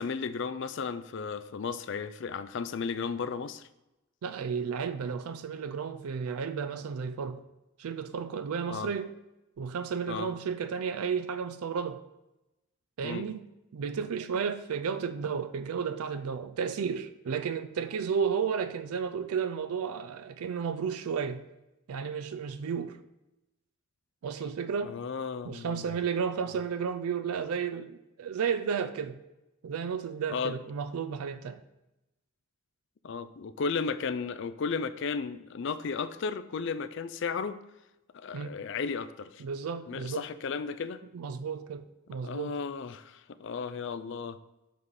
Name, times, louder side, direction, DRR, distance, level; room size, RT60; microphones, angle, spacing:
voice 1, 0.0-3.7 8.7-8.9 10.1-10.3 13.0-13.3 24.8-25.9 30.3-30.6 33.0-37.6 38.1-39.4 39.9-41.0 42.2-44.4, left 5 dB, 55° left, 0.4 m, -34 dB
voice 2, 4.2-7.4 7.8-9.1 9.6-12.0 13.0-13.4 13.7-21.4 21.9-23.0 24.2-24.9 25.4-29.2 29.6-31.6 38.3-38.5 39.4-40.3 41.1-42.6, right 6 dB, 85° right, 0.4 m, -33 dB
7.3 x 4.2 x 4.7 m
head